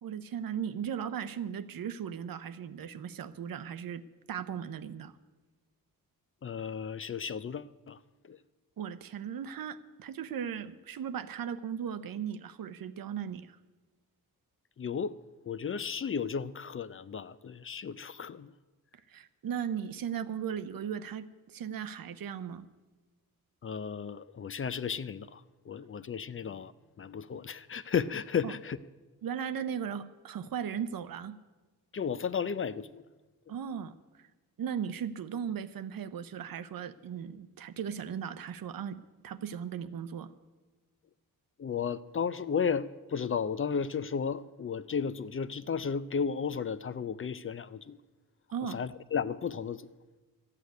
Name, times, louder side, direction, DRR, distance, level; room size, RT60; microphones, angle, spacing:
voice 1, 0.0-4.0 4.3-5.1 8.8-13.6 19.1-22.7 28.4-28.5 29.2-31.4 33.5-33.9 34.6-40.3 48.5-48.8, right 8 dB, 75° right, 12 dB, 0.8 m, -37 dB
voice 2, 6.4-8.0 8.2-8.4 14.8-15.1 15.4-18.5 23.6-26.7 27.0-28.8 31.9-33.0 41.6-48.0 48.7-49.9, left 6 dB, 35° left, 15 dB, 0.5 m, -34 dB
13.0 x 8.4 x 9.4 m, 1.2 s
wide cardioid pair, 100°, 35 cm